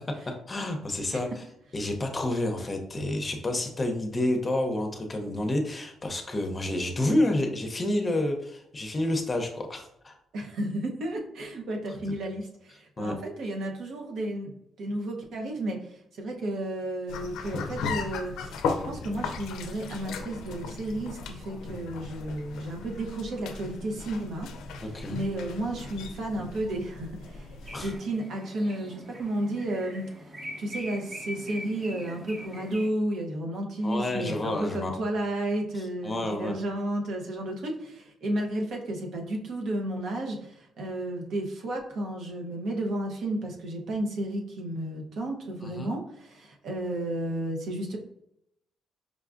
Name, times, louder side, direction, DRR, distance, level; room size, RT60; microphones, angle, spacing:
voice 1, 0.3-1.3 1.7-10.1 13.0-13.1 24.8-25.2 27.7-27.9 33.8-35.0 36.0-36.5 45.6-45.9, left 1 dB, 25° left, 4 dB, 0.6 m, -29 dB
voice 2, 10.3-18.6 18.8-30.3 30.6-48.0, right 1 dB, 70° right, 1 dB, 0.7 m, -32 dB
sound 1, 17.1-28.0, left 4 dB, 85° left, 0.4 m, -37 dB
sound 2, 27.6-32.9, equal, 35° right, 0.9 m, -42 dB
5.0 x 2.3 x 2.4 m, 0.78 s
cardioid pair, 90°, 0 cm